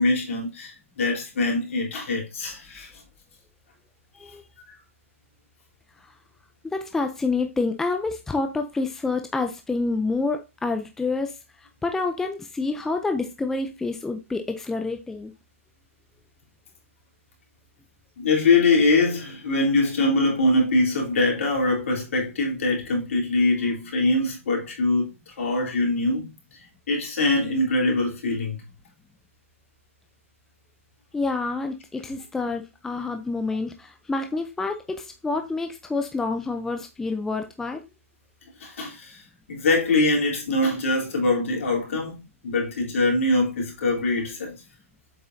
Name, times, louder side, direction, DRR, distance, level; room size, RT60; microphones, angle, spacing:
voice 1, 0.0-2.9 18.2-26.3 26.9-28.6 38.6-39.2 39.5-42.2 42.4-44.6, left 2 dB, 65° left, 3.6 m, -23 dB
voice 2, 6.6-11.3 11.8-15.3 31.1-37.8, left 3 dB, 5° left, 0.6 m, -28 dB
7.6 x 5.5 x 2.7 m
hypercardioid pair, 140°, 8 cm